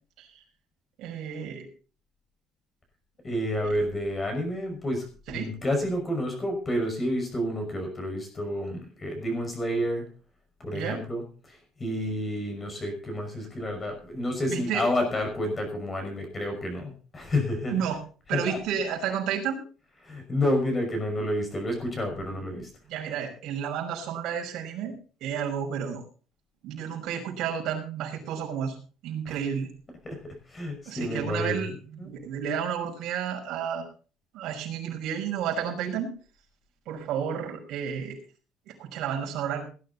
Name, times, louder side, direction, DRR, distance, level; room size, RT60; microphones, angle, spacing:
voice 1, 1.0-1.7 3.6-3.7 5.3-5.5 10.7-11.0 14.3-14.8 17.7-18.0 18.3-19.6 22.2-22.4 22.9-26.0 26.6-28.8 29.0-29.7 30.9-33.9 34.3-36.2 36.9-38.2 38.7-39.6, right 8 dB, 60° right, 0 dB, 5.9 m, -31 dB
voice 2, 3.2-10.0 10.6-17.7 18.3-18.6 20.0-22.7 29.3-29.4 30.0-31.7 32.0-32.1, left 1 dB, 20° left, 4 dB, 5.8 m, -30 dB
18.5 x 11.5 x 4.1 m, 0.38 s
cardioid pair, 165°, 0 cm